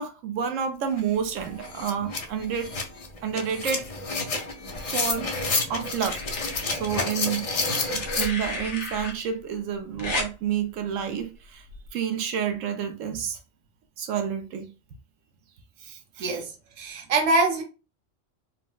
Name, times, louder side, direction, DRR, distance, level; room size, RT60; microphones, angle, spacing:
voice 1, 0.0-2.7 3.2-3.9 4.9-5.3 5.7-6.2 6.7-7.5 7.9-11.6 11.9-13.4 14.0-14.7 15.8-16.4, right 8 dB, 80° right, 0.9 m, -29 dB
sound 1, 1.0-1.1 1.4-8.3, left 3 dB, 55° left, 0.4 m, -30 dB
sound 2, 4.7-5.4 6.0-6.6 7.8-9.1 10.0-10.3 11.7-11.9, left 3 dB, 90° left, 1.3 m, -33 dB
voice 2, 16.2-16.5 16.8-17.6, right 2 dB, 35° right, 0.6 m, -23 dB
4.0 x 2.1 x 2.2 m
omnidirectional pair, 1.3 m